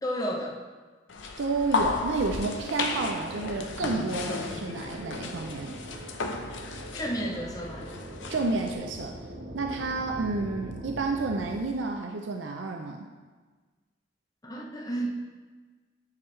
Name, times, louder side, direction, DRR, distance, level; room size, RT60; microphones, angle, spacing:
voice 1, 0.0-0.6 7.0-7.9 14.4-15.1, equal, 20° left, 0 dB, 0.7 m, -32 dB
sound 1, 1.1-8.7, left 4 dB, 80° left, 0.6 m, -34 dB
voice 2, 1.4-5.7 8.3-9.1 9.5-13.1, right 3 dB, 80° right, 3 dB, 0.5 m, -30 dB
sound 2, 2.1-11.5, right 1 dB, 45° right, 0.9 m, -42 dB
9.5 x 4.7 x 3.2 m, 1.4 s
head